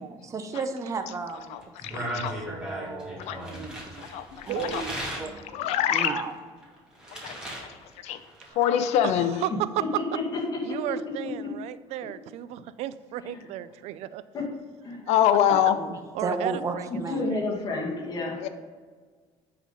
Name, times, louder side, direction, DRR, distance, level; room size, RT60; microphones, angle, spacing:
voice 1, 0.0-1.6 1.9-2.1 2.5-6.3 15.5-17.2, right 4 dB, 30° right, 7 dB, 0.7 m, -35 dB
voice 2, 1.5-2.4 3.3-3.4 4.0-4.8 5.5-6.2 7.1-7.4 8.0-8.2 8.6-9.4 15.1-15.8 18.4-18.5, left 10 dB, 80° left, 10 dB, 0.6 m, -24 dB
sound 1, 1.6-5.3 5.8-7.7 7.9-8.5, right 1 dB, 5° right, 1.9 m, -36 dB
voice 3, 4.5-5.0 8.5-8.7 9.0-9.8 10.6-14.2 16.1-17.5, right 13 dB, 75° right, 15 dB, 0.4 m, -34 dB
voice 4, 9.8-10.8 11.2-11.5 13.2-13.4 14.3-14.5 14.8-15.1 16.9-18.4, left 3 dB, 35° left, -2 dB, 2.0 m, -31 dB
9.2 x 4.0 x 5.3 m, 1.5 s
cardioid pair, 150°, 11 cm